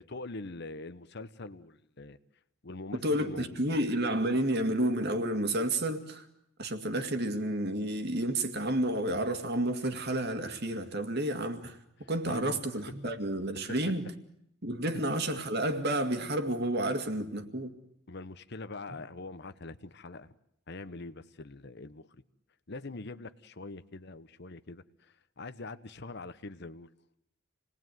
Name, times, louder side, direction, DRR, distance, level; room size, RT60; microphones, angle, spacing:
voice 1, 0.0-2.2 2.6-3.8 12.0-12.8 13.7-13.9 18.1-20.3 20.7-22.1 22.7-26.9, left 2 dB, 55° left, 1.0 m, -43 dB
voice 2, 2.9-6.2 6.6-11.8 12.1-14.1 14.6-17.8, right 1 dB, 50° right, 2.2 m, -30 dB
28.0 x 19.5 x 9.3 m
head